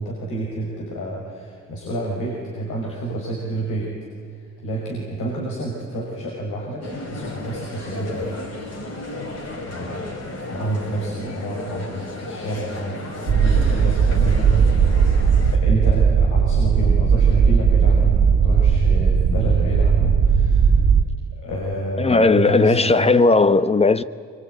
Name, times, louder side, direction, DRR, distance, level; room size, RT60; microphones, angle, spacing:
voice 1, 0.0-4.0 4.3-8.4 9.6-10.2 10.5-14.7 15.4-20.6 21.3-23.1, right 2 dB, 80° left, 5.7 m, -28 dB
sound 1, 6.8-15.6, left 2 dB, 55° left, 5.3 m, -33 dB
sound 2, 13.3-21.0, right 6 dB, 60° right, 1.9 m, -17 dB
voice 2, 22.0-24.0, left 3 dB, 20° left, 0.9 m, -16 dB
23.5 x 23.5 x 9.4 m
cardioid pair, 90°, 30 cm